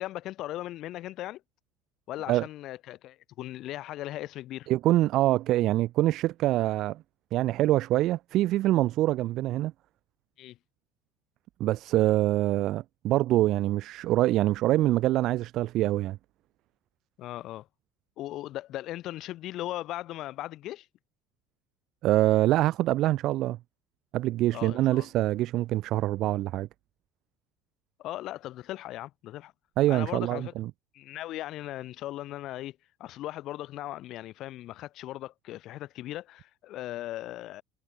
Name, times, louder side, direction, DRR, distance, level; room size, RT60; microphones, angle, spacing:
voice 1, 0.0-1.4 2.1-4.7 10.4-10.6 17.2-17.7 18.2-20.9 24.5-25.1 28.0-29.5 29.9-30.5 30.9-37.6, left 15 dB, 45° left, 4.6 m, -38 dB
voice 2, 4.7-7.0 7.3-9.7 11.6-16.2 22.0-23.6 24.1-26.7 29.8-30.7, right 15 dB, 50° right, 3.3 m, -25 dB
cardioid pair, 160°, 0 cm